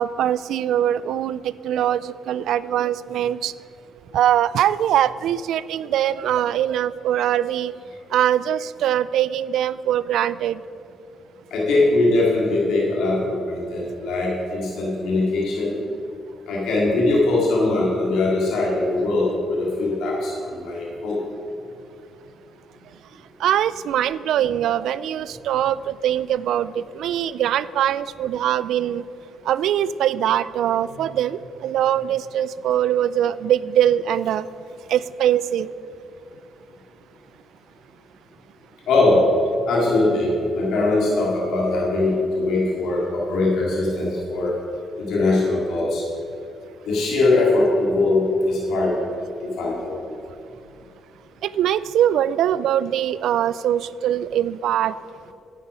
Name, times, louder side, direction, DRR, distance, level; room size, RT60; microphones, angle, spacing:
voice 1, 0.0-3.5 4.1-7.7 8.1-10.6 23.4-29.0 29.5-34.4 34.9-35.7 51.4-54.9, right 11 dB, 80° right, 17 dB, 0.3 m, -22 dB
voice 2, 11.5-15.8 16.5-21.2 38.9-39.2 39.7-44.5 45.0-46.0 46.9-48.9 49.4-50.0, left 2 dB, 80° left, -5 dB, 2.6 m, -21 dB
10.5 x 9.0 x 5.0 m, 2.7 s
cardioid pair, 90°, 0 cm